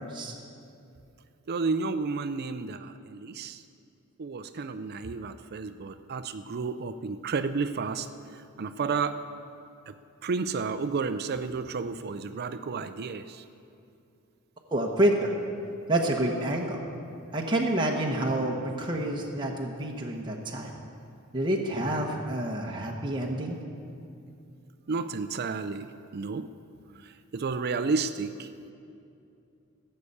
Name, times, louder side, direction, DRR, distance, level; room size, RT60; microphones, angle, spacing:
voice 1, 1.5-3.6 4.2-8.1 8.6-9.2 9.9-10.0 10.2-13.4 24.9-26.5 27.0-28.7, right 4 dB, 45° right, 11 dB, 0.5 m, -31 dB
voice 2, 14.7-15.3 15.9-16.8 17.3-20.7 21.3-23.6, right 1 dB, 20° right, -1 dB, 1.0 m, -28 dB
15.5 x 6.7 x 8.5 m, 2.6 s
head